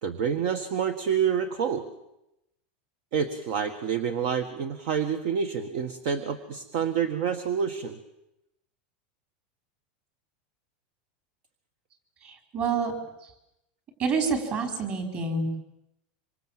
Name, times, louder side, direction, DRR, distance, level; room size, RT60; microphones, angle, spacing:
voice 1, 0.0-1.8 3.1-8.0, right 7 dB, 55° right, 9 dB, 1.7 m, -28 dB
voice 2, 12.5-12.9 14.0-15.6, right 4 dB, 35° right, 4 dB, 5.3 m, -27 dB
26.0 x 25.5 x 7.8 m, 0.88 s
supercardioid pair, 160°, 5 cm